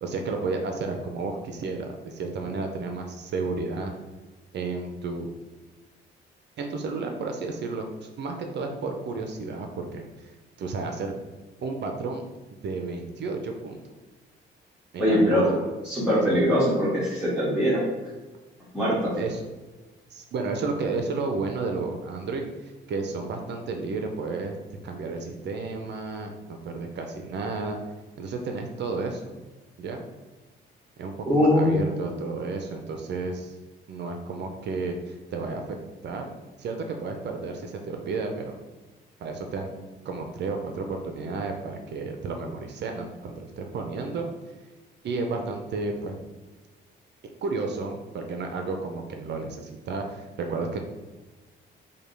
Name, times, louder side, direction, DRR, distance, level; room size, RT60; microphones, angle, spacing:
voice 1, 0.0-3.9 4.5-5.3 6.6-10.3 10.6-11.1 11.6-12.2 12.5-13.8 14.9-15.7 16.3-16.4 19.2-19.4 20.1-24.6 24.8-27.8 28.2-29.3 29.8-30.0 31.0-33.6 33.9-35.8 36.0-36.3 36.6-38.6 39.2-39.7 40.0-44.3 45.0-46.1 47.4-50.8, right 3 dB, 60° right, 3 dB, 0.5 m, -32 dB
voice 2, 15.0-15.4 15.8-17.8 18.7-19.1 31.2-31.7, equal, 5° right, -10 dB, 1.4 m, -22 dB
5.1 x 2.2 x 3.3 m, 1.2 s
cardioid pair, 90°, 20 cm